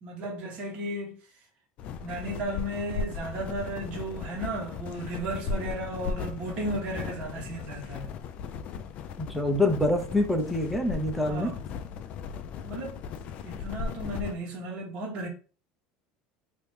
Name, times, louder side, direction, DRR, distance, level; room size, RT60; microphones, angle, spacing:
voice 1, 0.0-1.1 2.0-8.1 11.3-11.7 12.6-13.0 13.4-15.3, right 1 dB, 50° right, 1.4 m, -34 dB
sound 1, 1.8-14.3, left 5 dB, 50° left, 0.4 m, -37 dB
voice 2, 9.2-11.5, left 1 dB, ahead, 0.7 m, -26 dB
3.0 x 2.9 x 3.4 m
supercardioid pair, 120°, 3 cm